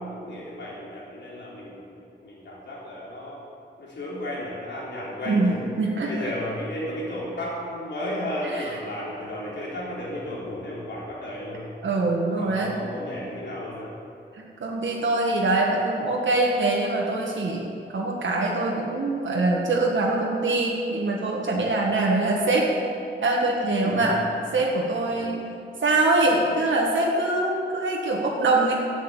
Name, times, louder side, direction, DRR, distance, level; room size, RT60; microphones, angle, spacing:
voice 1, 0.0-3.4 3.8-5.6 6.0-11.7 12.3-13.9 23.8-24.1 25.2-25.4, left 1 dB, 70° left, -6 dB, 3.5 m, -33 dB
voice 2, 5.3-6.3 8.4-8.8 11.8-12.7 14.3-17.7 17.9-22.7 23.2-24.2 24.5-25.4 25.8-28.7, right 2 dB, 85° right, -2 dB, 1.7 m, -23 dB
12.0 x 8.3 x 9.0 m, 2.6 s
wide cardioid pair, 175°, 19 cm